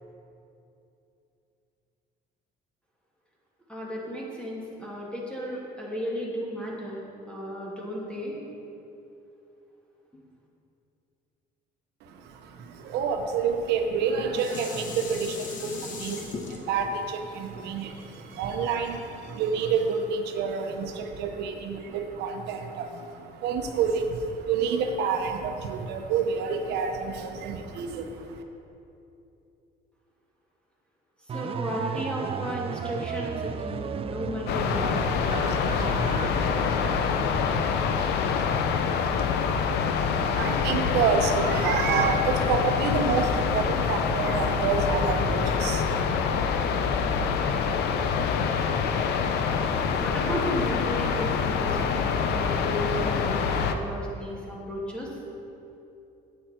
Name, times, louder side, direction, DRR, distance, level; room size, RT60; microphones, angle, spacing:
voice 1, 3.7-7.0 7.3-8.4 31.3-35.0 50.0-55.1, equal, 5° left, -4 dB, 2.4 m, -34 dB
voice 2, 12.0-28.4 40.0-46.1, right 5 dB, 80° right, 5 dB, 0.8 m, -28 dB
Dishes pots and pans, 13.8-19.1 19.6-19.7, left 4 dB, 50° left, 1.3 m, -40 dB
sound 1, 31.3-37.8, right 7 dB, 35° right, 0.4 m, -34 dB
sound 2, 34.5-53.8, left 6 dB, 75° left, 0.7 m, -26 dB
10.0 x 8.7 x 4.4 m, 2.8 s
cardioid pair, 110°, 17 cm